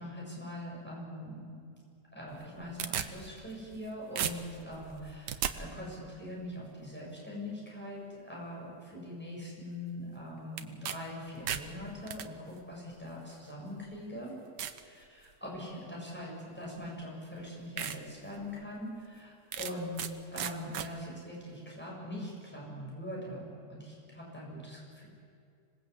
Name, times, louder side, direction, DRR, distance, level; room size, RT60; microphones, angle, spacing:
voice 1, 0.0-1.7 2.1-14.3 14.8-25.1, left 1 dB, 5° left, -4 dB, 7.5 m, -42 dB
sound 1, 2.3-3.9 4.2-5.5 10.6-11.0 11.3-12.3 13.1-13.2 13.9-14.0 14.6-14.8 15.3-15.7 16.8-16.9 17.3-17.4 17.8-18.0 18.4-18.5 19.5-20.1 20.4-20.9, right 9 dB, 80° right, 1.6 m, -36 dB
26.0 x 19.5 x 8.5 m, 2.4 s
omnidirectional pair, 1.8 m